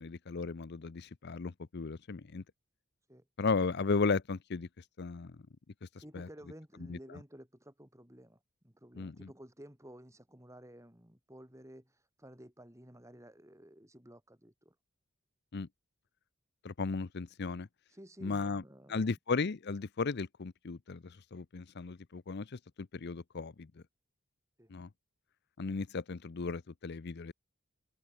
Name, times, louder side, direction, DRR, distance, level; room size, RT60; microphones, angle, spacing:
voice 1, 0.0-2.4 3.4-4.7 5.0-5.3 6.1-6.3 6.9-7.0 9.0-9.3 15.5-15.7 16.6-17.7 18.2-18.6 18.9-23.7 24.7-24.9 25.6-27.3, left 4 dB, 50° left, 0.6 m, -35 dB
voice 2, 6.0-14.8 17.9-19.1 24.6-24.7, equal, 15° right, 7.5 m, -54 dB
head